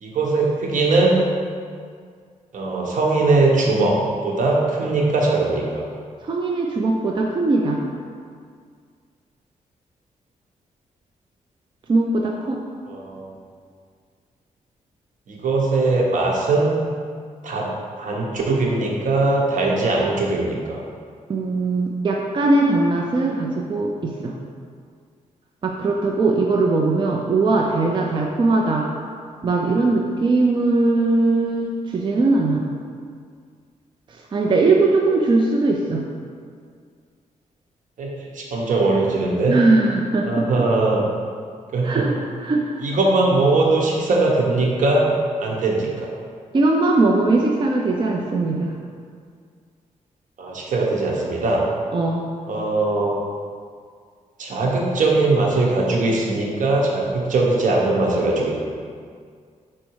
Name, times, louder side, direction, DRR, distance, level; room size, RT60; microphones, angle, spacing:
voice 1, 0.0-1.2 2.5-5.9 12.9-13.3 15.3-16.8 17.4-17.7 18.0-20.8 38.0-39.6 40.2-41.0 41.7-42.1 42.8-45.1 45.4-46.1 50.4-51.6 52.5-53.2 54.4-58.5, right 2 dB, 70° right, -2 dB, 1.1 m, -20 dB
voice 2, 6.2-7.8 11.9-12.6 21.3-24.3 25.6-28.9 29.4-32.6 34.1-36.0 39.5-40.5 41.8-42.1 42.4-42.8 46.5-48.7 51.9-52.2, right 3 dB, 35° right, -1 dB, 0.5 m, -20 dB
5.3 x 4.4 x 4.7 m, 2.1 s
wide cardioid pair, 120°, 14 cm